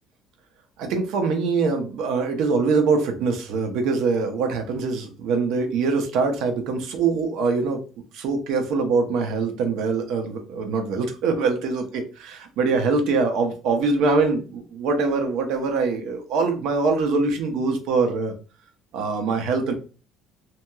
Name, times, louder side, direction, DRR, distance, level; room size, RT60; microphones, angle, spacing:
voice 1, 0.8-7.8 8.1-18.3 18.9-19.7, right 4 dB, 70° right, 5 dB, 0.7 m, -23 dB
2.8 x 2.8 x 2.3 m, 0.34 s
cardioid pair, 160°, 0 cm